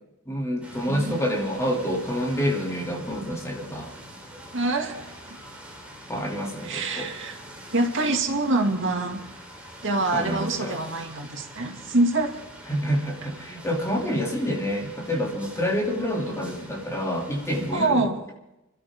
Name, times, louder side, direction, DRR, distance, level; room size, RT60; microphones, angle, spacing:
voice 1, 0.3-3.9 6.1-7.1 10.1-10.8 12.7-18.1, equal, 15° left, -1 dB, 2.9 m, -28 dB
sound 1, 0.6-17.9, equal, 5° right, 3.8 m, -44 dB
voice 2, 0.9-1.2 4.5-5.4 6.6-7.4 7.7-9.3 9.8-12.4 17.7-18.1, right 2 dB, 60° right, 3 dB, 2.3 m, -25 dB
27.5 x 13.0 x 3.7 m, 0.90 s
head